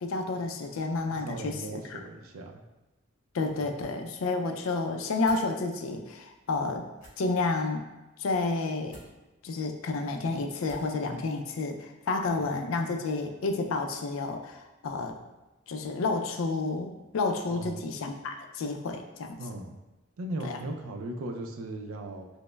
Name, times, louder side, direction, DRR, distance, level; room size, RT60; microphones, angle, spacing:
voice 1, 0.0-2.0 3.3-6.9 7.2-7.8 8.2-9.0 9.4-15.2 15.7-19.4 20.4-20.6, left 3 dB, 75° left, 5 dB, 0.4 m, -30 dB
voice 2, 1.2-2.6 3.6-3.8 12.3-12.6 17.5-17.8 19.4-19.8 20.2-22.3, right 2 dB, 85° right, 4 dB, 0.4 m, -38 dB
sound 1, 5.2-5.5 6.9-7.1 8.9-9.1 10.6-11.0, equal, 35° left, 0.8 m, -49 dB
5.1 x 2.0 x 2.2 m, 1.1 s
head